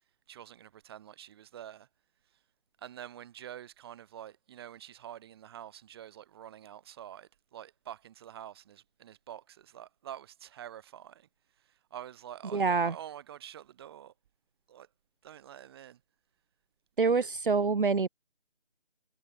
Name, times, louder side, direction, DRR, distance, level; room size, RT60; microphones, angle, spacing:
voice 1, 0.3-1.9 2.8-11.3 11.6-14.1 14.7-14.9 15.2-16.0 17.0-17.3, right 11 dB, 25° right, 6.4 m, -47 dB
voice 2, 12.5-12.9 17.0-18.1, right 4 dB, 55° right, 2.2 m, -26 dB
figure-of-eight pair, 160°, 31 cm